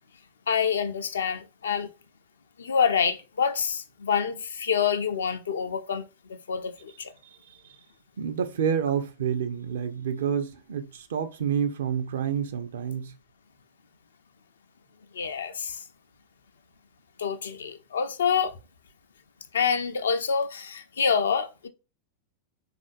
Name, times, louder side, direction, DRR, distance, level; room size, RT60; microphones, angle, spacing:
voice 1, 0.5-1.9 2.6-7.1 15.1-15.9 17.2-18.6 19.5-21.7, left 6 dB, 70° left, 0.4 m, -27 dB
voice 2, 8.2-13.1, right 8 dB, 60° right, 0.4 m, -28 dB
3.6 x 2.4 x 2.4 m
figure-of-eight pair, 90°, 0 cm